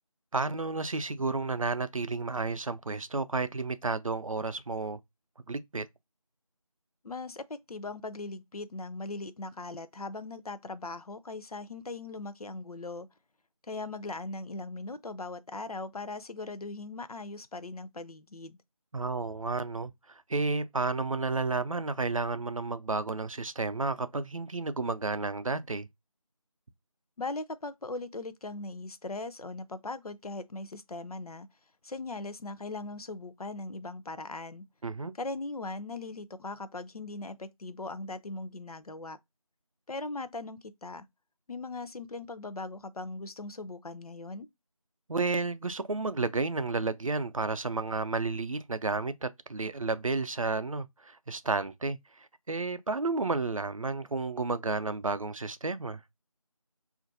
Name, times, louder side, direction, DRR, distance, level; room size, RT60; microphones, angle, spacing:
voice 1, 0.3-5.0 5.5-5.9 18.9-25.9 34.8-35.1 45.1-56.0, right 3 dB, 65° right, 0.4 m, -32 dB
voice 2, 7.0-13.1 13.6-18.6 27.2-31.5 31.8-34.6 35.1-39.2 39.9-41.1 41.5-44.5, left 3 dB, 80° left, 0.5 m, -39 dB
3.9 x 2.5 x 2.5 m
figure-of-eight pair, 175°, 19 cm